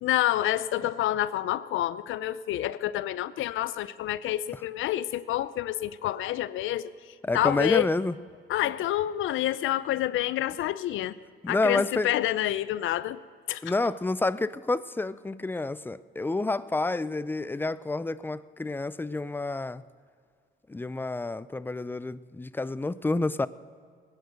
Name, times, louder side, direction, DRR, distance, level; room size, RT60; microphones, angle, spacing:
voice 1, 0.0-6.9 7.3-7.9 8.5-11.2 11.5-13.2 13.5-13.6, left 13 dB, 80° left, 0.6 m, -28 dB
voice 2, 7.2-8.1 11.4-12.2 13.6-19.8 20.7-23.5, left 2 dB, 10° left, 0.4 m, -29 dB
20.5 x 9.4 x 6.4 m
cardioid pair, 90°, 20 cm